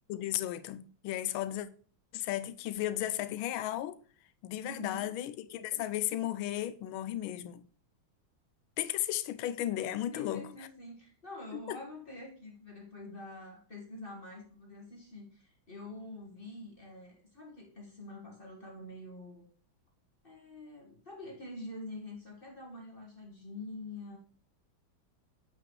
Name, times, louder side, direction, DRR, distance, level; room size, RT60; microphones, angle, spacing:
voice 1, 0.1-1.7 2.1-4.0 4.4-7.6 8.8-10.5 11.5-11.8, left 13 dB, 80° left, 1.4 m, -35 dB
voice 2, 4.6-5.1 10.1-19.4 20.2-24.2, left 2 dB, 30° left, 1.6 m, -46 dB
7.6 x 5.8 x 3.1 m
omnidirectional pair, 2.3 m